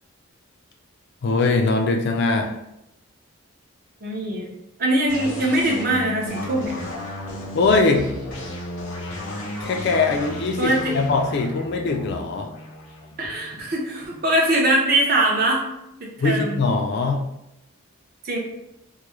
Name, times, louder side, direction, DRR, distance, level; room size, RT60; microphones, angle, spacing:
voice 1, 1.2-2.5 7.5-8.1 9.6-12.5 16.2-17.2, left 3 dB, 50° left, 3 dB, 0.3 m, -21 dB
voice 2, 4.0-4.5 4.8-6.7 10.6-10.9 13.2-15.6 16.0-16.6 18.2-18.4, right 1 dB, 45° right, -2 dB, 0.5 m, -22 dB
sound 1, 5.1-14.5, left 1 dB, 75° left, 0.7 m, -34 dB
2.3 x 2.0 x 3.0 m, 0.85 s
head